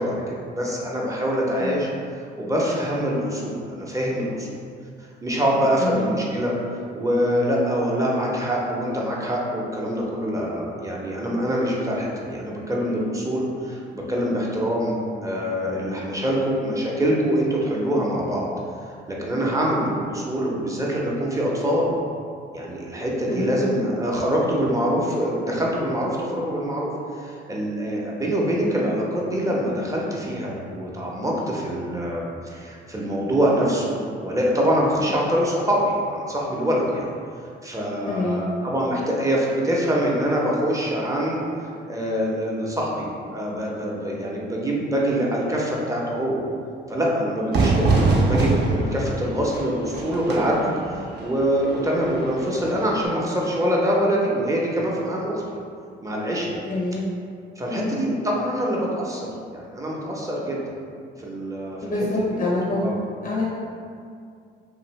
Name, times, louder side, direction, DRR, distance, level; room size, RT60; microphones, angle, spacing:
voice 1, 0.0-1.9 2.2-4.6 5.2-6.5 6.9-15.0 15.2-18.5 19.1-21.9 22.5-37.1 37.6-41.4 41.9-46.4 46.9-47.9 48.2-55.4 56.0-56.6 57.6-60.6 61.2-62.5 62.8-63.0, equal, 15° right, -3 dB, 0.6 m, -24 dB
voice 2, 1.5-1.9 5.8-6.1 23.3-23.7 38.1-38.4 56.6-57.0 57.7-58.1 61.8-62.9 63.2-63.6, left 2 dB, 45° left, -4 dB, 0.5 m, -26 dB
Fire / Fireworks, 47.5-53.1, right 3 dB, 60° right, 0.6 m, -24 dB
2.7 x 2.5 x 3.1 m, 2.3 s
cardioid pair, 90°, 20 cm